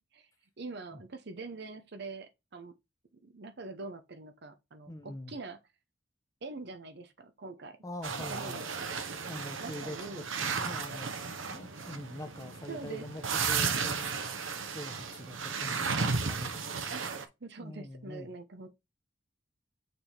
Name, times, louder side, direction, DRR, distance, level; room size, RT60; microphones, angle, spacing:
voice 1, 0.6-2.7 3.2-5.6 6.4-7.8 8.3-8.9 9.6-10.3 12.7-13.1 16.9-17.1 17.4-18.7, right 3 dB, 60° right, 0.8 m, -44 dB
voice 2, 4.9-5.3 7.8-8.7 9.3-11.1 11.5-14.3 14.7-17.0 17.6-18.3, left 1 dB, 15° left, 0.9 m, -44 dB
sound 1, 8.0-17.2, right 5 dB, 90° right, 0.9 m, -34 dB
6.7 x 3.6 x 4.4 m
head